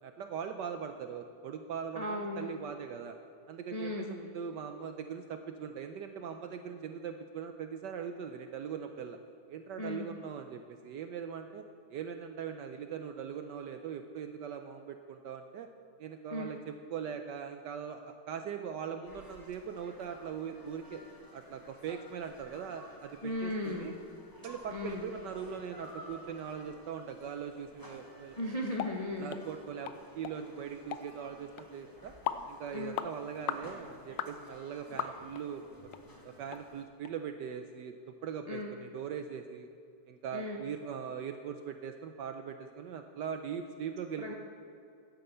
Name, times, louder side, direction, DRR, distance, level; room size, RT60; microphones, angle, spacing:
voice 1, 0.0-3.1 3.5-9.2 9.5-11.6 11.9-15.7 16.0-21.0 21.3-23.9 24.4-28.4 29.2-32.1 32.5-35.9 36.2-37.9 38.2-39.7 40.1-44.3, right 7 dB, 75° right, 7 dB, 1.0 m, -41 dB
voice 2, 1.9-2.5 3.7-4.1 9.8-10.0 16.3-16.5 23.2-24.0 24.7-25.1 28.4-29.4 32.7-33.0 38.5-38.7 40.3-40.6 44.2-44.3, left 1 dB, 50° left, 0 dB, 0.4 m, -36 dB
sound 1, 19.0-36.8, left 1 dB, 15° left, 0.8 m, -54 dB
sound 2, 28.8-28.9 29.3-29.4 29.9-30.0 30.2-30.4 30.9-31.1 31.6-31.7 32.3-32.5 33.0-33.1 33.5-33.7 34.2-34.3 35.0-35.4 35.9-36.0 36.5-36.6 37.1-37.2, left 10 dB, 75° left, 1.1 m, -36 dB
9.7 x 8.8 x 7.9 m, 2.5 s
omnidirectional pair, 2.3 m